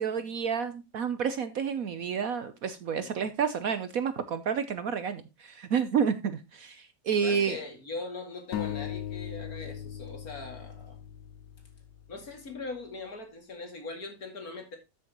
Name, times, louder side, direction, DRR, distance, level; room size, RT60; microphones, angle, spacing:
voice 1, 0.0-7.6, right 7 dB, 60° right, 1.0 m, -30 dB
voice 2, 7.2-11.0 12.1-14.8, left 3 dB, 55° left, 2.8 m, -41 dB
sound 1, 8.5-12.1, left 10 dB, 80° left, 1.5 m, -38 dB
13.0 x 6.9 x 2.9 m
omnidirectional pair, 1.9 m